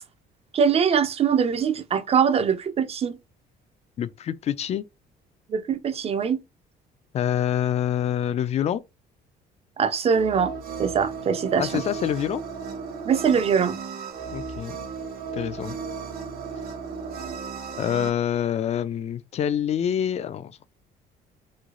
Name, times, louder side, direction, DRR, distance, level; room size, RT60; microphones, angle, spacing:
voice 1, 0.5-3.2 5.5-6.4 9.8-10.5 10.8-11.8 13.0-13.8, right 7 dB, 35° right, 0.5 m, -22 dB
voice 2, 4.0-4.8 7.1-8.8 11.6-12.4 14.3-14.8 15.3-15.8 17.8-20.6, left 10 dB, 40° left, 0.4 m, -26 dB
sound 1, 10.1-18.1, right 5 dB, 60° right, 0.9 m, -35 dB
3.2 x 2.2 x 3.7 m
cardioid pair, 110°, 17 cm